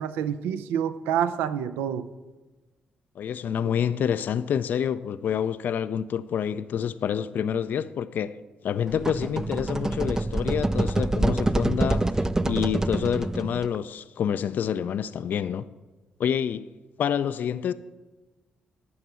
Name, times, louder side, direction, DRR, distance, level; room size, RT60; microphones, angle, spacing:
voice 1, 0.0-2.1, right 9 dB, 80° right, 0.4 m, -27 dB
voice 2, 3.2-8.4 8.6-12.1 12.5-15.7 16.2-16.7 17.0-17.7, left 8 dB, 60° left, 0.3 m, -27 dB
sound 1, 8.9-13.8, right 2 dB, 15° right, 0.4 m, -26 dB
9.5 x 5.8 x 5.6 m
hypercardioid pair, 50°, 3 cm